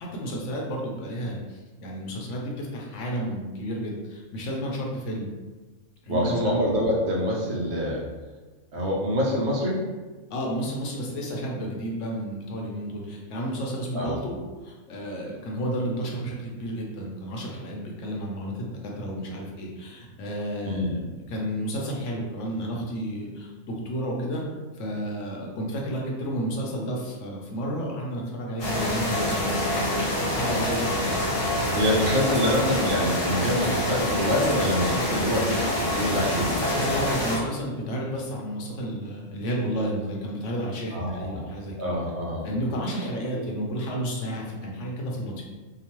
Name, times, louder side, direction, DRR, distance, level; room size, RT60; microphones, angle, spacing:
voice 1, 0.0-5.3 6.0-6.5 10.3-14.4 14.6-24.4 24.7-29.6 29.9-31.1 36.8-41.9 42.4-45.4, equal, 70° left, -1 dB, 0.9 m, -31 dB
voice 2, 6.1-8.0 8.7-9.8 13.9-14.1 20.7-20.9 31.7-36.9 40.9-41.5 41.8-42.4 43.3-43.4, equal, 65° right, -3 dB, 0.8 m, -25 dB
sound 1, 28.6-37.4, left 1 dB, 85° left, 1.3 m, -26 dB
2.9 x 2.1 x 2.9 m, 1.3 s
omnidirectional pair, 1.4 m